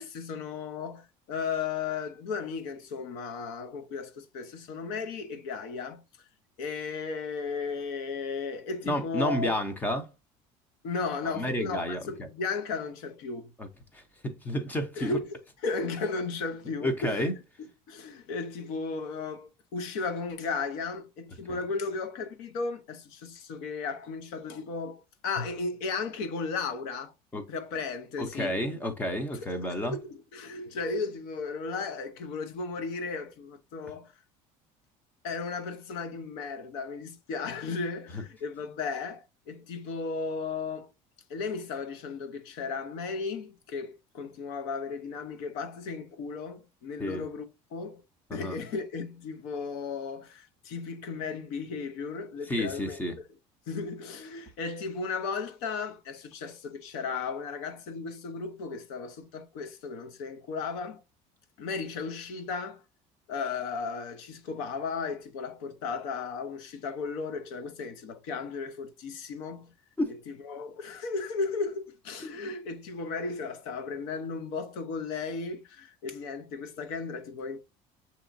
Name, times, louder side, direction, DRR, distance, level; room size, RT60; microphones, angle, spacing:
voice 1, 0.0-6.0 6.6-9.5 10.8-13.5 15.0-15.3 15.6-17.3 17.6-27.1 27.5-28.6 29.3-34.1 35.2-40.9 41.3-48.0 48.3-53.0 53.7-61.0 61.6-62.8 63.3-69.7 70.1-70.2 70.4-77.6, left 4 dB, 80° left, 0.9 m, -35 dB
voice 2, 8.8-10.1 11.2-12.1 13.6-13.7 13.9-15.2 16.8-17.3 21.5-21.6 27.3-27.4 28.2-30.0 38.1-38.2 47.0-47.3 48.3-48.6 52.5-53.2 70.0-70.1 72.2-72.3, equal, 10° left, 0.6 m, -31 dB
7.0 x 2.8 x 2.6 m
cardioid pair, 165°, 14 cm